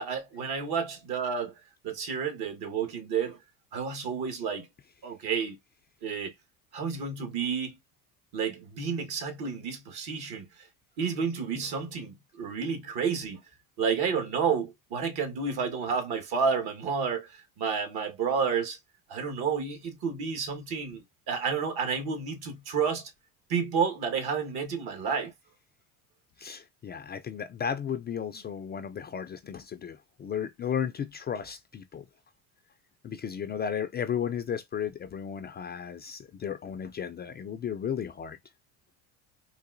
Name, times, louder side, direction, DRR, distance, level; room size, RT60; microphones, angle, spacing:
voice 1, 0.0-1.5 1.8-3.4 3.7-4.7 5.0-5.6 6.0-6.3 6.7-7.8 8.3-10.7 11.0-13.4 13.8-18.8 19.1-23.1 23.5-25.3, right 6 dB, 65° right, 1.4 m, -30 dB
voice 2, 26.4-32.0 33.0-38.4, left 8 dB, 25° left, 0.3 m, -34 dB
3.8 x 2.5 x 2.5 m
supercardioid pair, 85°, 41 cm